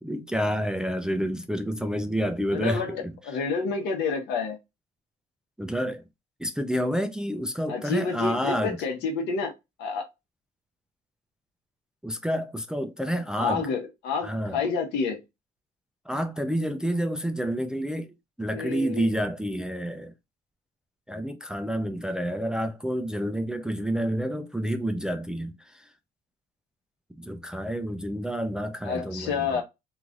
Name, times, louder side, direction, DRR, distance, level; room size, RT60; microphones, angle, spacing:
voice 1, 0.0-3.2 5.6-6.0 6.4-8.8 12.0-13.7 14.2-14.6 16.1-20.1 21.1-25.9 27.2-29.6, equal, 5° right, 0.3 m, -29 dB
voice 2, 2.5-4.6 7.7-9.5 9.8-10.1 13.4-15.2 18.5-19.1 28.9-29.6, left 5 dB, 85° left, 1.0 m, -29 dB
3.1 x 2.4 x 2.4 m
cardioid pair, 110°, 17 cm